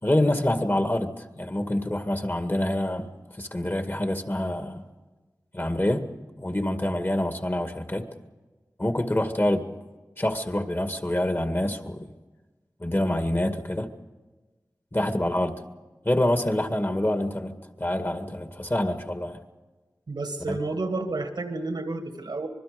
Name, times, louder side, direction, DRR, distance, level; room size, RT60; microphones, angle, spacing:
voice 1, 0.0-3.1 3.4-4.8 5.5-6.0 6.4-8.0 8.8-9.8 10.2-12.1 12.8-13.9 14.9-15.6 16.1-17.5 17.8-19.4 20.5-20.6, left 1 dB, 30° left, 7 dB, 2.1 m, -26 dB
voice 2, 20.1-22.5, right 2 dB, 90° right, 6 dB, 2.3 m, -30 dB
26.0 x 21.0 x 5.3 m, 1.3 s
wide cardioid pair, 45°, 7 cm